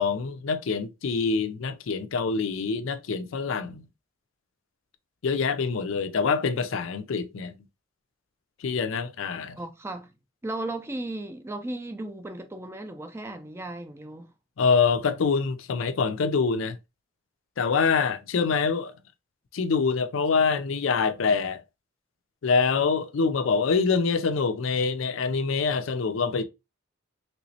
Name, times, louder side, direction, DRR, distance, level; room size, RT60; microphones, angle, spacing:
voice 1, 0.0-3.8 5.2-7.5 8.6-9.6 14.6-16.8 17.6-18.9 19.5-21.6 22.4-26.4, left 5 dB, 70° left, 0.4 m, -25 dB
voice 2, 9.6-10.1 10.4-14.3, right 2 dB, 10° right, 0.3 m, -35 dB
3.3 x 3.0 x 2.7 m
head